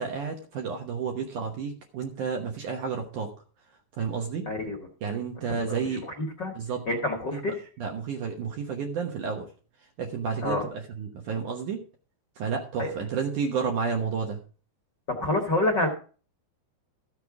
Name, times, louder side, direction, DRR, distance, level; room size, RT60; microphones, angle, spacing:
voice 1, 0.0-3.3 4.0-4.5 5.0-6.1 6.5-6.8 7.3-7.4 7.8-9.5 10.0-11.8 12.4-14.4, right 6 dB, 65° right, 2 dB, 2.1 m, -31 dB
voice 2, 4.4-4.9 5.5-5.6 5.9-6.5 6.9-7.6 10.4-10.6 12.8-12.9 15.2-15.9, left 2 dB, 70° left, 2 dB, 1.0 m, -28 dB
14.0 x 6.8 x 4.8 m, 0.38 s
omnidirectional pair, 5.1 m